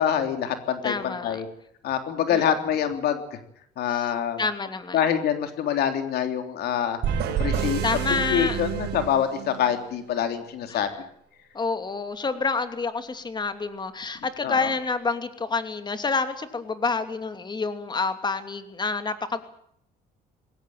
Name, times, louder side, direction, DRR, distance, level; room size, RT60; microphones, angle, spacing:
voice 1, 0.0-1.5 1.8-3.4 3.8-4.4 4.9-7.0 7.4-7.8 8.3-10.9 14.4-14.7, left 9 dB, 70° left, 7 dB, 3.4 m, -25 dB
voice 2, 0.8-1.4 2.3-2.4 3.9-4.1 4.4-5.0 7.8-8.6 10.7-10.8 11.5-19.4, left 4 dB, 25° left, 9 dB, 2.8 m, -28 dB
sound 1, 7.0-9.8, right 8 dB, 80° right, 4.6 m, -28 dB
21.0 x 18.5 x 9.0 m, 0.68 s
cardioid pair, 110°, 17 cm